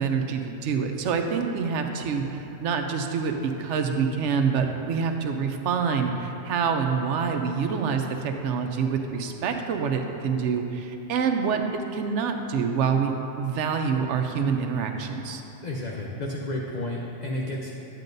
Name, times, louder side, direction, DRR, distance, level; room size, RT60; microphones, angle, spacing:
voice 1, 0.0-15.4, right 6 dB, 80° right, 5 dB, 0.9 m, -26 dB
voice 2, 15.6-17.7, left 1 dB, 45° left, -2 dB, 0.6 m, -31 dB
9.2 x 9.0 x 2.6 m, 2.9 s
omnidirectional pair, 1.2 m